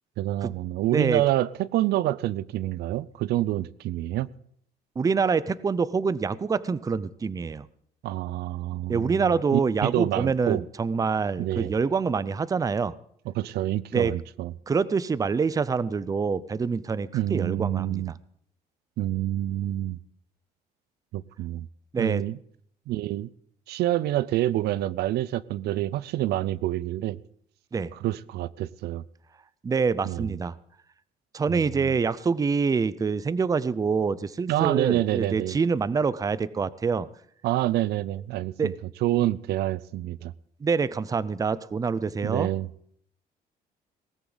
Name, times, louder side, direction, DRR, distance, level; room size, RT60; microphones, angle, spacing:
voice 1, 0.2-4.3 8.0-10.6 11.4-11.7 13.3-14.5 17.1-18.1 19.0-20.0 21.1-21.7 22.0-22.4 22.9-23.3 23.7-27.2 27.9-29.0 30.0-30.4 31.5-32.0 34.5-35.6 37.4-38.7 39.0-40.3 42.2-42.7, right 14 dB, 75° right, 20 dB, 0.5 m, -27 dB
voice 2, 0.9-1.2 5.0-7.6 8.9-12.9 13.9-14.1 14.7-18.2 21.9-22.2 27.7-27.9 29.6-30.6 31.3-37.1 38.6-38.7 40.6-42.5, right 5 dB, 20° right, 19 dB, 0.5 m, -26 dB
18.0 x 14.0 x 4.0 m, 0.66 s
cardioid pair, 110°, 17 cm